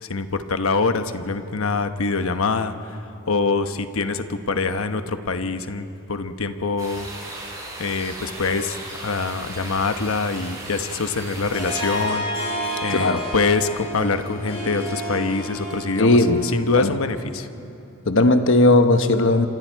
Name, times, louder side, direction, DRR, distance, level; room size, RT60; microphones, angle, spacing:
voice 1, 0.0-3.0 3.3-7.1 7.8-12.2 12.8-16.2 16.5-17.5, left 4 dB, 85° left, 9 dB, 1.0 m, -24 dB
sound 1, 6.8-12.1, right 2 dB, 20° right, 7.3 m, -36 dB
Harp, 11.5-17.0, equal, 30° left, 5.0 m, -30 dB
voice 2, 12.9-13.2 16.0-16.4 16.8-16.9 18.1-19.5, left 2 dB, 65° left, 8 dB, 1.1 m, -17 dB
27.5 x 27.0 x 4.6 m, 2.8 s
head